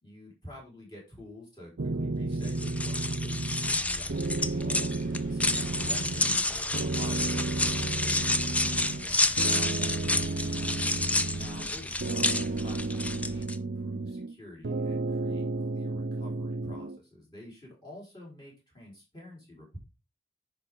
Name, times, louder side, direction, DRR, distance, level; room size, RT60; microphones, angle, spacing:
voice 1, 0.0-10.3 11.4-19.8, left 1 dB, 25° left, -4 dB, 4.5 m, -49 dB
sound 1, 1.8-3.8 4.1-6.4 6.7-9.1 9.4-11.7 12.0-14.3 14.6-17.0, right 2 dB, 60° right, 0.6 m, -32 dB
sound 2, 2.4-13.6, left 2 dB, 5° left, 0.4 m, -30 dB
sound 3, 3.6-13.4, equal, 40° left, 5.4 m, -46 dB
10.5 x 5.4 x 3.7 m, 0.27 s
head